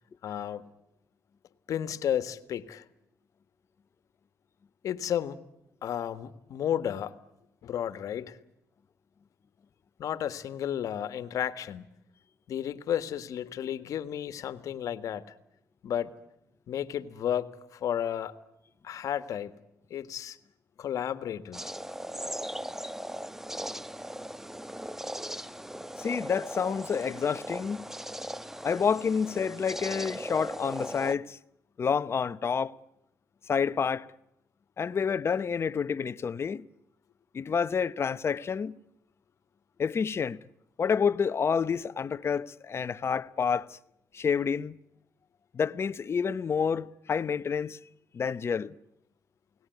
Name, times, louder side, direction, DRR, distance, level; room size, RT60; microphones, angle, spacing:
voice 1, 0.2-0.7 1.7-2.8 4.8-5.4 5.8-7.2 7.6-8.4 10.0-11.9 12.5-15.3 15.8-16.1 16.7-18.3 18.8-19.5 19.9-20.4 20.8-21.6, left 10 dB, 70° left, 1.8 m, -32 dB
sound 1, 21.5-31.2, right 1 dB, 5° right, 1.0 m, -38 dB
voice 2, 26.0-27.9 28.6-31.4 31.8-32.7 33.5-34.1 34.8-36.6 37.3-38.7 39.8-40.4 40.8-43.8 44.1-44.8 45.5-47.8 48.1-48.7, left 6 dB, 45° left, 1.0 m, -29 dB
29.0 x 19.5 x 9.5 m
cardioid pair, 75°, 6 cm